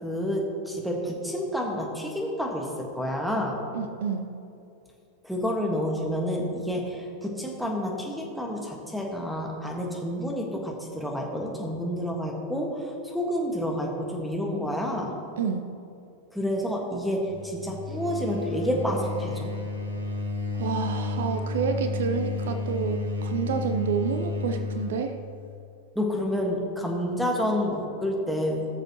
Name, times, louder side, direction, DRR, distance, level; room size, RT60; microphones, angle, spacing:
voice 1, 0.0-3.6 5.2-15.1 16.3-19.5 25.9-28.7, equal, ahead, 0 dB, 1.5 m, -29 dB
voice 2, 3.7-4.3 15.4-15.6 20.5-25.2, right 6 dB, 60° right, 8 dB, 0.5 m, -29 dB
sound 1, 17.3-25.0, left 2 dB, 80° right, 1.4 m, -31 dB
17.5 x 6.6 x 2.9 m, 2.6 s
figure-of-eight pair, 90°, 0 cm